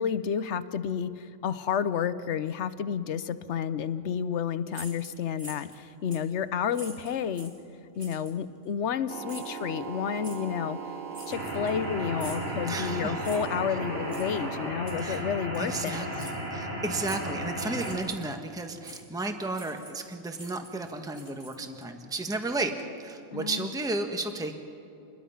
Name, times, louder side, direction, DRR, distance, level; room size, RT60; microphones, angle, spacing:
voice 1, 0.0-7.6 8.0-10.8 11.3-16.0 23.3-23.7, left 8 dB, 65° left, 13 dB, 1.1 m, -31 dB
sound 1, 4.7-5.8 6.1-6.3 6.7-7.6 8.0-8.4 9.3-9.6 10.2-10.4 11.1-11.8 12.2-12.5 13.2-13.6 14.1-14.3 14.9-15.2 15.5-15.7 16.2-16.4 17.0-17.3 17.7-18.3 18.8-19.0 19.5-20.1 20.3-21.8, equal, 25° right, 3.3 m, -46 dB
sound 2, 9.1-14.7, right 7 dB, 50° right, 0.9 m, -39 dB
sound 3, 11.3-18.0, equal, 70° right, 5.9 m, -35 dB
voice 2, 12.7-13.1 15.0-15.2 15.6-22.7 23.0-24.5, right 2 dB, 5° right, 5 dB, 1.3 m, -33 dB
28.5 x 21.5 x 5.7 m, 2.7 s
omnidirectional pair, 1.3 m